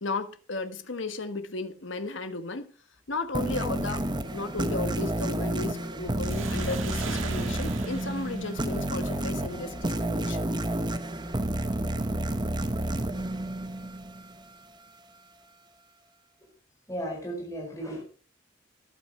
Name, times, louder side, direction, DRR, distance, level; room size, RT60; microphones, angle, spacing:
voice 1, 0.0-2.7 3.1-4.1 4.3-10.4, left 3 dB, 65° left, 1.3 m, -34 dB
sound 1, 3.3-14.5, right 1 dB, 20° right, 1.0 m, -30 dB
sound 2, 6.2-9.6, right 5 dB, 75° right, 2.2 m, -41 dB
voice 2, 16.9-18.0, equal, 15° left, 4.9 m, -35 dB
13.5 x 11.5 x 4.4 m
head